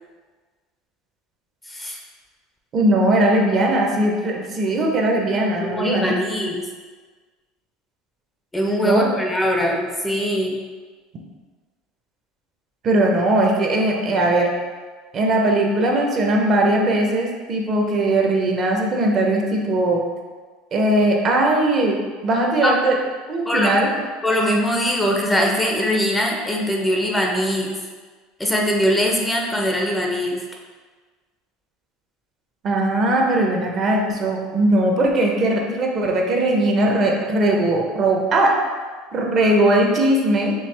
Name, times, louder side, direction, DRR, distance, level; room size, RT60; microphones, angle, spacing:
voice 1, 1.7-2.0 5.6-6.7 8.5-10.6 22.6-22.7 23.5-23.7 24.2-27.8 28.4-30.4, equal, 10° left, 0 dB, 0.5 m, -21 dB
voice 2, 2.7-6.1 8.8-9.1 12.8-14.5 15.1-20.0 20.7-22.0 22.2-23.0 23.3-23.9 32.6-38.5 39.1-40.5, right 1 dB, 40° right, 0 dB, 0.7 m, -19 dB
4.6 x 2.8 x 3.3 m, 1.4 s
supercardioid pair, 115°, 0 cm